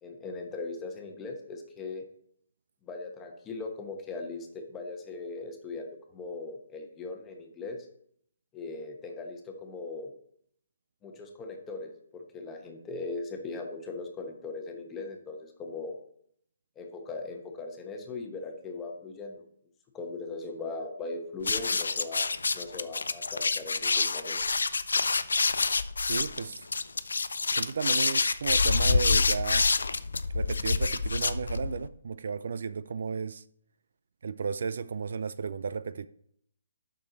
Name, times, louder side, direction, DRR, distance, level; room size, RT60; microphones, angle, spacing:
voice 1, 0.0-2.0 2.8-7.9 8.5-10.1 11.0-16.0 16.8-19.3 19.9-24.4, left 3 dB, 15° left, 1.2 m, -39 dB
sound 1, 21.4-31.9, left 4 dB, 85° left, 0.5 m, -27 dB
voice 2, 26.0-26.7 27.5-29.7 30.3-33.4 34.2-36.1, right 5 dB, 65° right, 0.4 m, -34 dB
8.7 x 6.5 x 4.1 m
hypercardioid pair, 155°, 0 cm